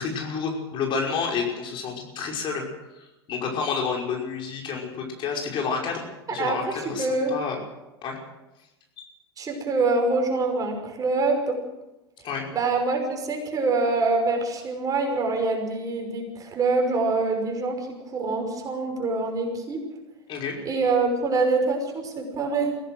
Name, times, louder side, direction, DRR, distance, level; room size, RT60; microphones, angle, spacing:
voice 1, 0.0-2.7 3.3-7.6 8.0-8.2 9.0-9.1 12.2-12.5 20.3-20.6, left 5 dB, 35° left, 0 dB, 5.5 m, -29 dB
voice 2, 6.3-7.3 9.4-11.6 12.5-17.8 18.1-19.8 20.6-22.8, right 3 dB, 25° right, 3 dB, 5.8 m, -25 dB
24.0 x 17.0 x 6.4 m, 0.98 s
figure-of-eight pair, 90°, 14 cm